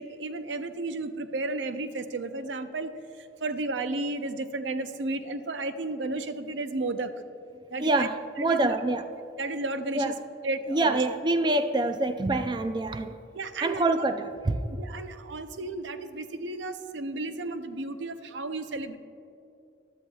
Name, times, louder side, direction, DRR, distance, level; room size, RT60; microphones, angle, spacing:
voice 1, 0.0-7.1 7.7-8.1 8.5-8.7 9.4-10.1 10.4-11.0 13.3-13.9 14.8-19.0, right 2 dB, 85° right, 10 dB, 0.6 m, -33 dB
voice 2, 7.8-9.0 9.9-10.1 10.7-13.2 13.6-14.6, right 2 dB, 25° right, 9 dB, 0.4 m, -26 dB
14.5 x 12.0 x 2.3 m, 2.6 s
head